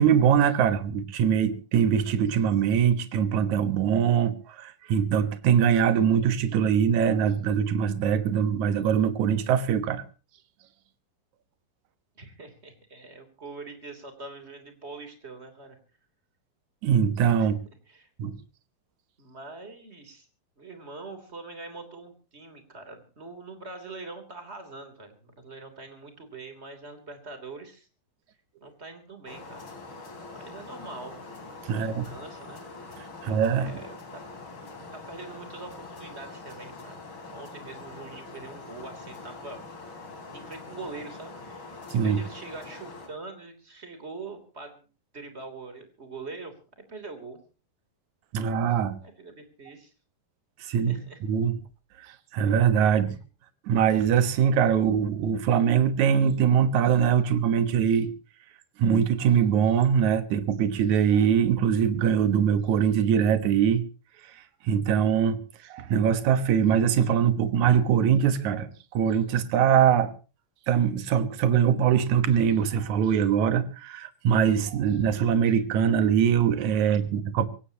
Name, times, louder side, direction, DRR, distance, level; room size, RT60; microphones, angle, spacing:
voice 1, 0.0-10.0 16.8-17.6 18.2-18.3 31.7-32.1 33.2-33.7 41.9-42.2 48.3-49.0 50.7-51.5 52.3-53.2 53.7-58.1 58.8-63.8 64.6-65.4 65.7-70.1 70.7-77.5, right 8 dB, 60° right, 2.4 m, -22 dB
voice 2, 12.1-15.8 17.4-17.5 17.9-18.1 19.2-20.3 20.6-27.9 28.6-32.6 33.6-34.2 34.9-37.0 37.3-39.6 40.3-44.9 45.1-46.5 46.9-47.4 49.0-49.9 50.7-51.2 52.8-53.0 76.8-77.0, right 3 dB, 20° right, 3.1 m, -43 dB
sound 1, 29.3-43.1, left 3 dB, 35° left, 4.1 m, -43 dB
24.5 x 17.0 x 2.9 m
omnidirectional pair, 4.2 m